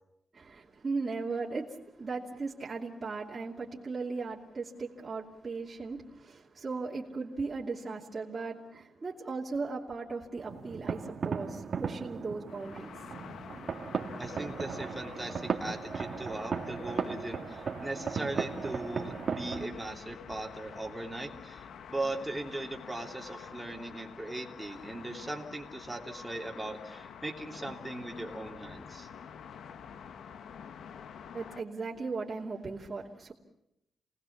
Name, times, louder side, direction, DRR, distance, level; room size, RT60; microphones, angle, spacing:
voice 1, 0.3-13.2 31.3-33.3, right 4 dB, 30° right, 2.7 m, -37 dB
sound 1, 10.4-19.7, right 5 dB, 45° right, 1.8 m, -36 dB
sound 2, 12.5-31.6, left 7 dB, 75° left, 1.1 m, -48 dB
voice 2, 14.2-21.6 21.9-29.1, right 2 dB, 10° right, 3.0 m, -39 dB
Breathing, 23.0-24.2 24.6-25.3 26.0-27.1, left 3 dB, 35° left, 6.6 m, -58 dB
29.5 x 19.0 x 7.2 m
wide cardioid pair, 155°, 0 cm